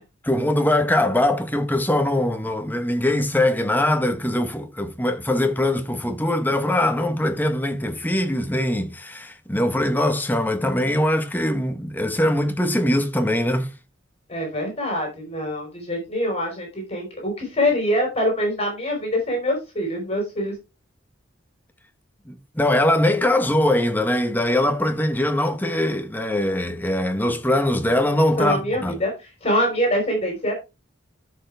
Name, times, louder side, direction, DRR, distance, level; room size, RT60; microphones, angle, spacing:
voice 1, 0.2-13.7 22.3-29.0, left 1 dB, 10° left, 1.3 m, -22 dB
voice 2, 14.3-20.5 28.4-29.1 29.4-30.5, equal, 35° left, 4.8 m, -24 dB
13.0 x 5.8 x 3.4 m
head